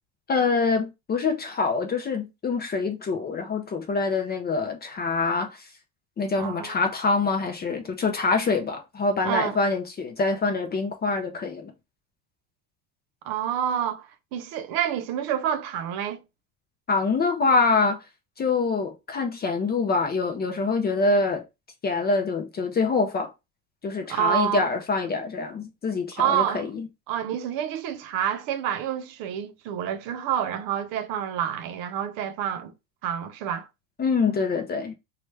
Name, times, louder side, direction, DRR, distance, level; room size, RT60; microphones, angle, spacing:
voice 1, 0.3-5.7 6.2-11.7 16.9-18.0 18.4-21.4 21.8-23.3 23.8-26.9 34.0-35.0, left 4 dB, 20° left, 0.4 m, -25 dB
voice 2, 6.4-6.7 9.2-9.5 13.2-16.2 24.1-24.6 26.2-26.6 27.1-32.7 33.0-33.7, right 10 dB, 60° right, 0.7 m, -28 dB
3.0 x 2.4 x 3.2 m
hypercardioid pair, 95°, 48 cm